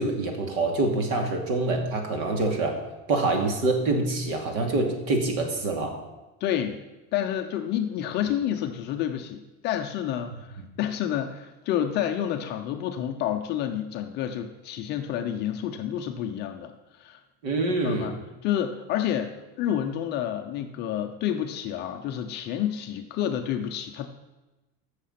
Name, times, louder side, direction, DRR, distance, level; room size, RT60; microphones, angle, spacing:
voice 1, 0.0-2.8 3.1-5.9 17.4-18.2, right 2 dB, 70° right, 3 dB, 2.7 m, -25 dB
voice 2, 6.4-6.8 7.1-16.7 17.0-17.2 17.8-24.1, left 10 dB, 25° left, 4 dB, 0.4 m, -29 dB
14.5 x 6.6 x 5.7 m, 1.1 s
cardioid pair, 170°, 41 cm